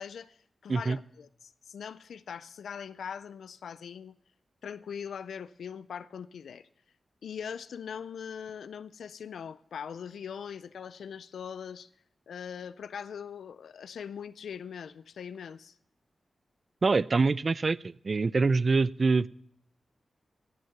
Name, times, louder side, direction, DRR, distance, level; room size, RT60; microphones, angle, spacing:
voice 1, 0.0-4.2 4.6-6.6 7.2-11.9 12.3-15.8, left 7 dB, 90° left, 0.4 m, -41 dB
voice 2, 16.8-19.3, right 4 dB, 55° right, 0.4 m, -25 dB
17.0 x 6.4 x 5.8 m
cardioid pair, 50°, 0 cm